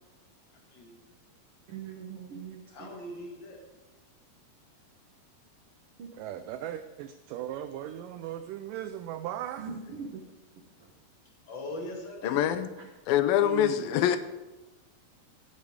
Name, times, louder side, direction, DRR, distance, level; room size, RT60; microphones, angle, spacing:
voice 1, 0.5-1.0 2.7-3.6 11.5-12.5, left 1 dB, 40° left, 1 dB, 2.0 m, -41 dB
voice 2, 1.7-2.9 6.0-6.1 9.6-10.2 12.2-12.3 12.8-12.9, right 6 dB, 65° right, 1 dB, 1.5 m, -41 dB
voice 3, 6.1-9.7 13.4-13.9, right 11 dB, 85° right, 10 dB, 1.9 m, -37 dB
voice 4, 12.2-12.7 13.1-14.2, left 11 dB, 80° left, 11 dB, 2.3 m, -24 dB
16.5 x 8.4 x 5.0 m, 1.1 s
omnidirectional pair, 4.4 m